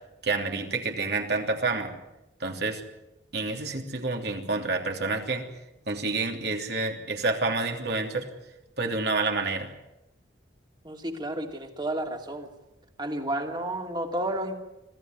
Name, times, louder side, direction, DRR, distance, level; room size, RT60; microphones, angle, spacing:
voice 1, 0.2-1.9 2.4-2.8 3.3-5.4 5.9-8.3 8.8-9.7, right 3 dB, 60° right, 3 dB, 3.1 m, -28 dB
voice 2, 10.8-12.5 13.0-14.5, right 1 dB, 25° right, 4 dB, 2.6 m, -31 dB
26.0 x 16.0 x 9.5 m, 0.94 s
head